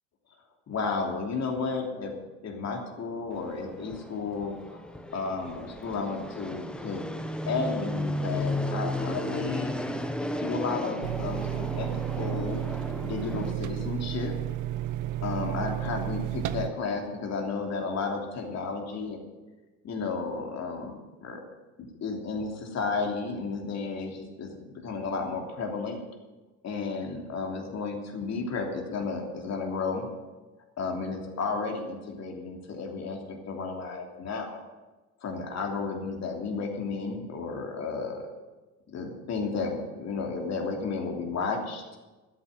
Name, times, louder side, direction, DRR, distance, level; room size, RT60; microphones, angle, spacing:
voice 1, 0.7-2.1 2.4-4.8 5.1-7.0 7.5-9.7 10.4-12.6 13.0-14.3 15.2-19.3 19.8-20.9 21.2-21.4 21.8-26.0 26.6-30.1 30.8-34.6 35.2-38.2 38.9-42.0, left 4 dB, 35° left, 2 dB, 3.1 m, -33 dB
Fixed-wing aircraft airplane, 3.3-13.5, left 1 dB, ahead, 1.1 m, -34 dB
sound 1, 11.0-16.7, right 13 dB, 45° right, 0.9 m, -32 dB
13.0 x 8.4 x 7.8 m, 1.2 s
hypercardioid pair, 75°, 44 cm